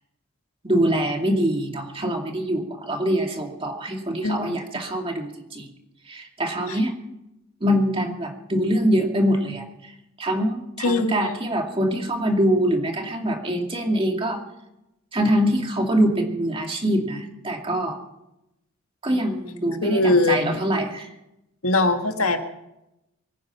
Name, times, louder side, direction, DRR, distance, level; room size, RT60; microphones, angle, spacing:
voice 1, 0.6-5.7 6.1-6.9 7.6-9.9 10.2-14.4 15.1-18.0 19.0-21.1, equal, 25° right, 2 dB, 2.5 m, -24 dB
voice 2, 4.2-4.6 6.7-6.8 10.8-11.4 19.8-20.6 21.6-22.4, left 2 dB, 90° left, 5 dB, 1.8 m, -21 dB
24.5 x 10.0 x 5.8 m, 0.89 s
head